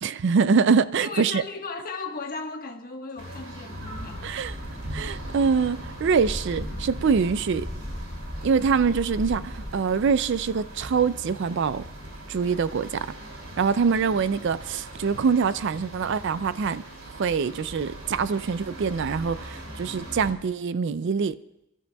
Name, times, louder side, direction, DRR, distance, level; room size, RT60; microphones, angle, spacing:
voice 1, 0.0-1.4 4.2-4.5 4.9-7.7 8.4-11.8 12.3-13.1 13.6-16.8 17.1-21.4, right 5 dB, 55° right, 0.4 m, -24 dB
voice 2, 1.0-4.4, left 4 dB, 40° left, 1.4 m, -36 dB
sound 1, 3.2-20.3, right 1 dB, 75° right, 2.8 m, -40 dB
sound 2, 4.1-9.7, equal, 15° left, 0.8 m, -38 dB
29.0 x 13.0 x 2.3 m
head